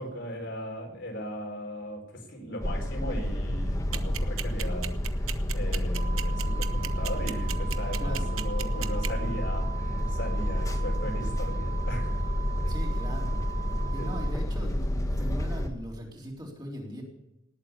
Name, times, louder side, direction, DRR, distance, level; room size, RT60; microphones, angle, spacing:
voice 1, 0.0-12.2 14.0-14.2, equal, 60° left, 2 dB, 4.3 m, -37 dB
sound 1, 2.6-15.7, equal, 15° left, 1.6 m, -29 dB
sound 2, 3.9-9.1, right 12 dB, 80° right, 1.0 m, -34 dB
sound 3, 6.0-14.3, right 10 dB, 45° right, 2.6 m, -41 dB
voice 2, 8.0-8.6 12.7-13.4 13.9-17.0, equal, 20° right, -1 dB, 3.9 m, -40 dB
19.0 x 8.5 x 8.4 m, 0.86 s
head